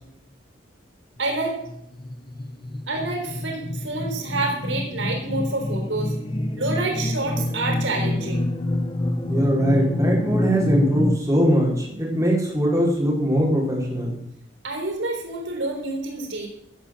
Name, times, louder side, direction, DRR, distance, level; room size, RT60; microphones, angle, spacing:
voice 1, 1.2-1.6 2.9-6.1 6.6-8.5 14.6-16.5, right 2 dB, 75° right, 2 dB, 4.0 m, -28 dB
sound 1, 1.4-11.2, left 1 dB, 25° left, 0.8 m, -27 dB
voice 2, 9.3-14.2, equal, 15° right, -4 dB, 4.3 m, -21 dB
15.0 x 7.3 x 7.7 m, 0.76 s
head